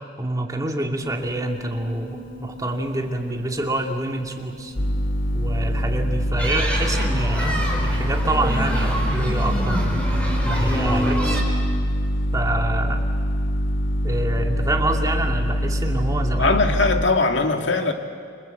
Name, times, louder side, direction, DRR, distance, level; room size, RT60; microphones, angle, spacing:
voice 1, 0.2-4.7 5.3-9.8 10.4-11.4 12.3-13.0 14.0-16.6, right 1 dB, 20° right, 2 dB, 2.3 m, -27 dB
Piano, 1.0-11.7, right 1 dB, 45° left, 2.6 m, -44 dB
sound 1, 4.8-17.1, equal, 90° left, 1.2 m, -24 dB
sound 2, 6.4-11.4, equal, 5° left, 4.9 m, -26 dB
voice 2, 16.4-17.9, left 3 dB, 75° left, 5 dB, 2.2 m, -20 dB
29.0 x 25.0 x 8.0 m, 2.3 s
head